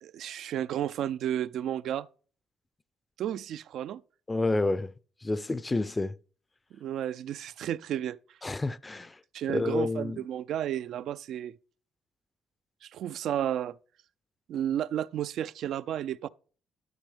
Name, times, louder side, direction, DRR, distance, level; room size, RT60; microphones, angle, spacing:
voice 1, 0.0-2.1 3.2-4.0 6.7-8.2 9.3-11.6 12.8-13.8 14.5-16.3, right 11 dB, 75° right, 0.3 m, -32 dB
voice 2, 4.3-4.9 5.2-6.2 8.4-9.2 9.5-10.2, left 2 dB, 20° left, 0.4 m, -29 dB
12.0 x 5.3 x 3.3 m
cardioid pair, 90°, 0 cm